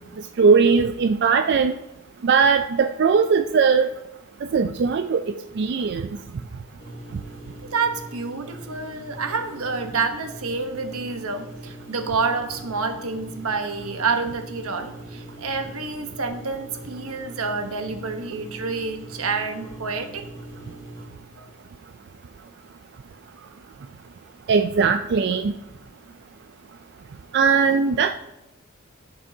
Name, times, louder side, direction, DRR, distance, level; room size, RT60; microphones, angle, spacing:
voice 1, 0.4-1.7 2.2-3.9 4.5-5.2 5.6-6.1 24.5-25.5 27.3-28.1, right 5 dB, 50° right, 7 dB, 0.4 m, -19 dB
sound 1, 6.8-21.1, right 1 dB, 20° left, 1.5 m, -41 dB
voice 2, 7.6-20.2 21.4-21.5 23.4-23.5, right 4 dB, 80° right, 6 dB, 1.1 m, -28 dB
14.0 x 6.1 x 2.7 m, 0.99 s
head